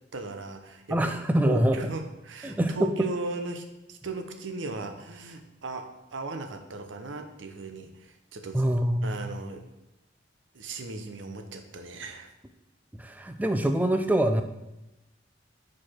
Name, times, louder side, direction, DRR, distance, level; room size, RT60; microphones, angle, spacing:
voice 1, 0.1-1.1 1.4-8.6 9.0-9.7 10.5-12.3, right 2 dB, 80° right, 6 dB, 0.7 m, -37 dB
voice 2, 0.9-1.8 2.4-2.9 8.5-9.3 12.9-14.4, right 1 dB, 10° right, 6 dB, 0.3 m, -25 dB
4.7 x 4.7 x 4.3 m, 0.94 s
head